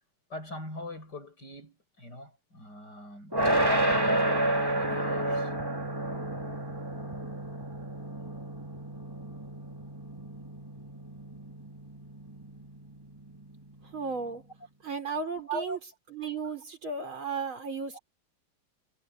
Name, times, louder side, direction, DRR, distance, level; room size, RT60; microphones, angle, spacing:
voice 1, 0.3-5.5 15.3-15.8 17.9-18.0, right 1 dB, 55° left, 8.5 m, -41 dB
sound 1, 3.3-14.3, right 1 dB, 10° right, 2.9 m, -31 dB
voice 2, 13.9-14.4 14.8-15.8 16.1-18.0, right 5 dB, 75° right, 5.6 m, -34 dB
omnidirectional pair, 2.2 m